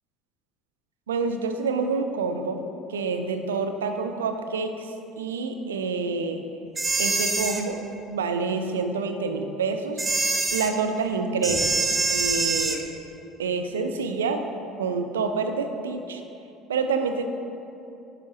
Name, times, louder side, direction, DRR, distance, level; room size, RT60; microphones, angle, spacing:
voice 1, 1.1-2.6 2.9-6.4 7.0-7.8 8.1-10.1 10.5-11.7 12.1-12.8 13.4-14.4 14.8-16.2 16.7-17.2, right 4 dB, 80° right, 6 dB, 0.4 m, -27 dB
sound 1, 6.8-7.6 10.0-10.7 11.4-12.8, right 3 dB, 25° right, 0.6 m, -24 dB
9.5 x 4.7 x 3.0 m, 2.8 s
figure-of-eight pair, 60°, 0 cm